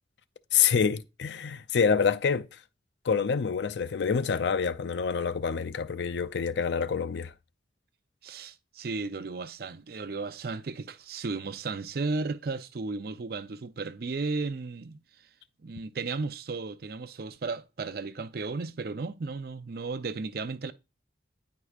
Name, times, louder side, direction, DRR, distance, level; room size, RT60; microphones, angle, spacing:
voice 1, 0.5-2.6 3.0-7.3, left 6 dB, 65° left, 0.4 m, -27 dB
voice 2, 8.2-15.0 15.6-20.7, right 3 dB, 50° right, 0.5 m, -34 dB
9.8 x 4.7 x 2.4 m
head